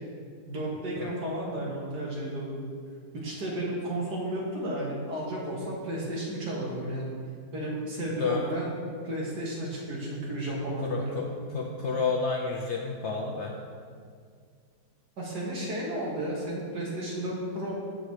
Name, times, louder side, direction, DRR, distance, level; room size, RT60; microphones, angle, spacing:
voice 1, 0.5-2.6 3.1-7.1 7.5-8.7 9.0-11.2 15.2-17.7, right 1 dB, 75° right, -4 dB, 2.3 m, -33 dB
voice 2, 10.8-11.3 11.5-13.5, left 4 dB, 65° left, 1 dB, 0.7 m, -30 dB
15.0 x 5.1 x 3.2 m, 2.1 s
omnidirectional pair, 1.8 m